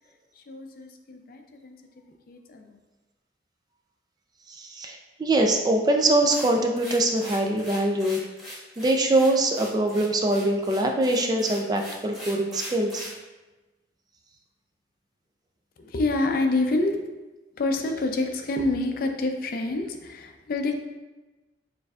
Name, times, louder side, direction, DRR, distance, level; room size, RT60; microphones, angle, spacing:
voice 1, 0.4-1.8 2.3-2.8 15.8-17.0 17.6-20.7, left 2 dB, 55° left, 4 dB, 0.4 m, -27 dB
voice 2, 4.6-8.2 8.4-13.1, right 1 dB, 25° right, 3 dB, 0.3 m, -23 dB
sound 1, 6.3-13.2, equal, ahead, 1.3 m, -41 dB
6.2 x 2.5 x 2.3 m, 1.1 s
head